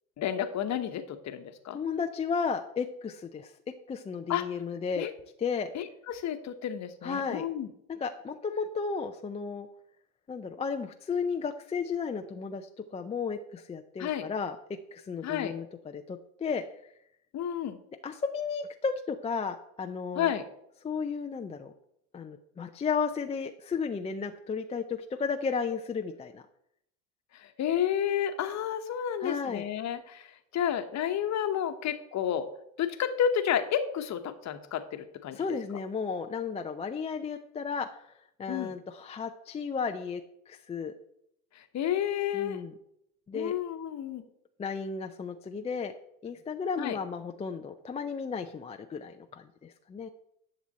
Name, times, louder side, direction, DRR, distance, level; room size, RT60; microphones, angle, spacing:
voice 1, 0.2-1.8 4.3-4.4 5.0-5.1 5.7-7.7 14.0-14.3 15.2-15.5 17.3-17.8 20.1-20.4 27.3-32.5 32.8-35.4 38.5-38.7 41.5-42.6 43.3-44.2 46.8-47.0, left 9 dB, 40° left, 8 dB, 1.1 m, -31 dB
voice 2, 1.7-5.1 5.4-5.7 7.0-7.4 7.9-9.7 10.3-14.6 14.9-16.6 18.0-20.3 20.8-21.7 22.1-26.4 29.2-29.6 35.3-38.1 38.4-40.2 40.5-40.9 42.3-42.7 43.3-43.6 44.6-45.9 46.2-50.1, left 5 dB, 15° left, 5 dB, 0.5 m, -34 dB
10.5 x 6.1 x 4.1 m, 0.75 s
hypercardioid pair, 90°, 43 cm